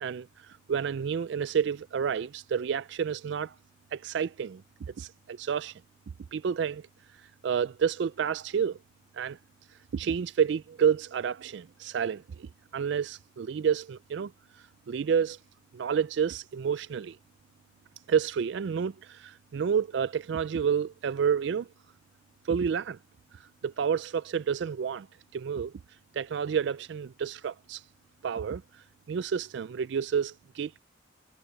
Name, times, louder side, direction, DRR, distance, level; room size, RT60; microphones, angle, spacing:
voice 1, 0.0-3.5 3.9-4.6 5.0-5.8 6.3-6.9 7.4-8.8 9.1-9.4 9.9-14.3 14.9-15.4 15.7-17.2 18.1-21.7 22.4-23.0 23.4-25.1 25.3-25.7 26.1-27.8 28.2-30.8, right 7 dB, 60° right, 0.3 m, -29 dB
head